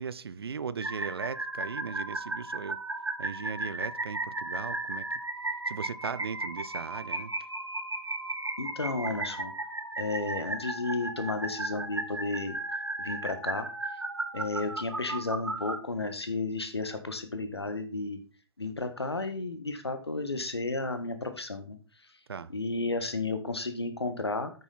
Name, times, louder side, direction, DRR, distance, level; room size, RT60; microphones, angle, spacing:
voice 1, 0.0-2.8 3.2-5.2 5.7-7.5 22.3-22.5, right 6 dB, 70° right, 0.6 m, -38 dB
sound 1, 0.8-15.8, right 2 dB, 85° right, 1.1 m, -35 dB
voice 2, 8.6-9.5 10.0-12.5 13.0-13.7 14.3-18.2 18.6-21.8 22.5-24.5, left 3 dB, 80° left, 1.5 m, -33 dB
8.7 x 6.9 x 4.2 m
figure-of-eight pair, 115°, 13 cm